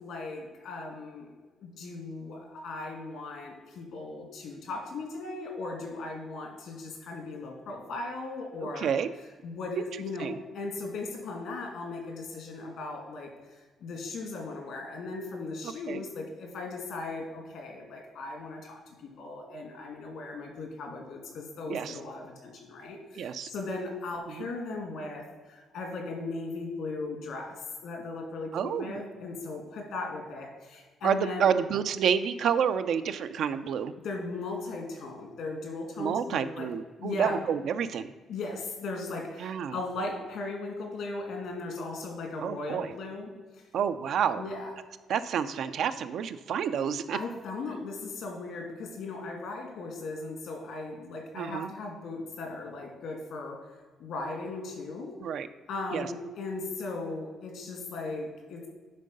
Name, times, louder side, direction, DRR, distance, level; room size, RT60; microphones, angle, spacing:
voice 1, 0.0-1.3 1.6-8.9 9.4-13.3 13.8-27.6 27.8-31.5 34.0-36.7 37.0-37.4 38.3-43.3 44.4-44.7 47.1-53.7 54.0-55.2 55.7-58.7, left 3 dB, 80° left, 2 dB, 2.1 m, -37 dB
voice 2, 8.6-9.1 9.8-9.9 10.2-10.4 15.6-16.0 21.7-22.0 23.2-23.5 24.3-24.5 28.5-29.0 31.0-33.9 36.0-38.1 39.4-39.8 42.4-42.9 43.7-44.4 45.1-47.2 51.3-51.7 55.2-55.5 55.9-56.1, right 8 dB, 70° right, 11 dB, 0.4 m, -29 dB
10.0 x 3.8 x 5.3 m, 1.3 s
cardioid pair, 90°, 0 cm